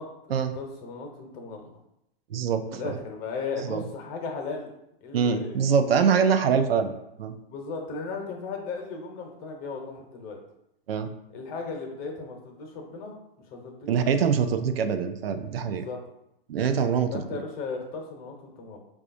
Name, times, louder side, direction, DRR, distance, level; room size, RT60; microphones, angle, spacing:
voice 1, 0.0-1.7 2.7-4.7 5.0-5.7 6.0-6.1 7.5-10.4 11.3-13.2 13.5-14.1 15.7-16.0 17.1-18.8, left 4 dB, 30° left, 2 dB, 0.7 m, -36 dB
voice 2, 2.3-3.0 3.6-3.8 5.1-7.4 10.9-11.1 13.9-15.9 16.5-17.1, right 6 dB, 80° right, 8 dB, 0.5 m, -24 dB
4.9 x 2.3 x 2.5 m, 0.82 s
hypercardioid pair, 120°, 30 cm